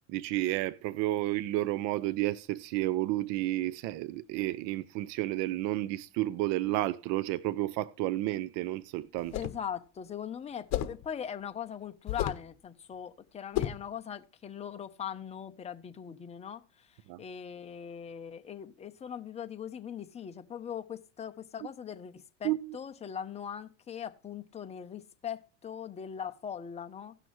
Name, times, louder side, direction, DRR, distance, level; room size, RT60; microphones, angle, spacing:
voice 1, 0.1-9.3 17.1-17.2 22.4-22.8, right 16 dB, 50° right, 0.5 m, -31 dB
sound 1, 9.2-9.7 10.7-11.0 12.1-12.5 13.5-13.9, left 13 dB, 45° left, 1.2 m, -32 dB
voice 2, 9.3-27.2, left 8 dB, 15° left, 0.7 m, -40 dB
17.0 x 6.1 x 3.1 m
supercardioid pair, 130°, 37 cm